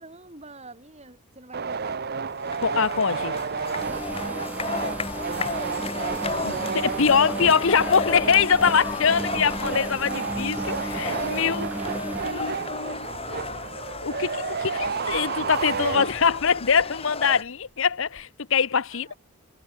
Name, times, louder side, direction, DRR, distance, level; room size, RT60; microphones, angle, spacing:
voice 1, 0.0-2.1 3.8-5.5 6.8-9.2 11.2-13.9 18.9-19.2, right 2 dB, 30° right, 4.7 m, -46 dB
sound 1, 1.5-16.5, right 5 dB, 45° right, 0.7 m, -32 dB
sound 2, 2.3-17.4, left 4 dB, 25° left, 1.4 m, -34 dB
voice 2, 2.6-3.4 6.4-11.7 12.2-13.0 14.0-19.1, left 6 dB, 60° left, 0.8 m, -23 dB
sound 3, 3.8-14.0 14.6-14.9 15.4-15.6 16.4-16.8 17.1-17.2 18.2-18.3, right 1 dB, 5° right, 0.5 m, -36 dB
head